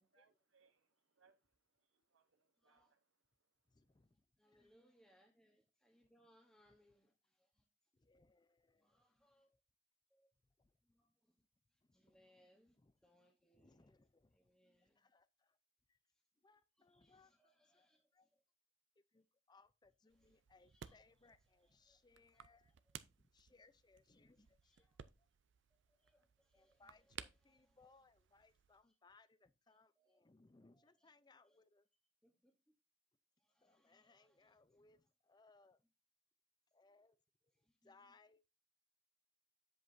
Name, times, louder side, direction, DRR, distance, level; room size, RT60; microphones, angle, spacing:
voice 1, 0.0-4.1, right 5 dB, 80° right, 0.9 m, -78 dB
voice 2, 2.6-2.9 4.0-7.7 8.8-9.5 10.1-10.3 10.8-11.4 11.7-13.9 14.3-15.1 16.1-16.2 16.7-18.4 19.1-19.2 20.1-22.9 24.3-25.0 25.7-28.1 28.8-28.9 29.7-30.2 30.6-31.6 32.2-32.7 33.4-34.8 37.5-38.1, equal, 5° left, 1.0 m, -76 dB
voice 3, 3.7-4.2 7.9-8.5 10.6-10.7 11.9-12.2 12.7-12.9 13.5-14.5 14.8-15.6 15.9-16.0 16.4-17.3 17.7-17.9 18.1-18.3 19.0-22.7 23.2-24.7 26.5-31.9 33.6-35.8 36.7-37.2 37.6-38.6, left 3 dB, 20° left, 0.5 m, -70 dB
sound 1, 20.1-28.8, right 8 dB, 60° right, 0.5 m, -59 dB
8.4 x 7.7 x 2.6 m
head